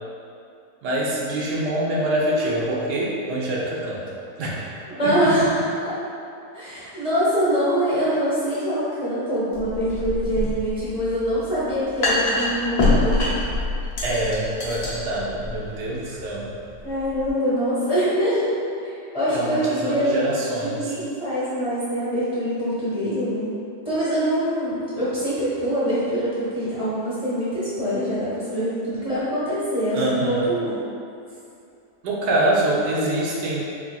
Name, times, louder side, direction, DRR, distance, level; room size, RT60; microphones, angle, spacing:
voice 1, 0.8-4.0 4.4-4.7 5.0-5.1 14.0-16.5 19.3-20.9 29.9-30.5 32.0-33.6, right 1 dB, 80° right, -5 dB, 1.3 m, -25 dB
voice 2, 5.0-5.9 6.5-13.3 16.8-18.5 18.8-20.2 20.6-23.5 23.8-30.8, equal, 30° left, -12 dB, 0.8 m, -24 dB
sound 1, 9.5-17.3, left 2 dB, 65° left, 1.0 m, -26 dB
4.8 x 2.7 x 2.2 m, 2.6 s
omnidirectional pair, 1.8 m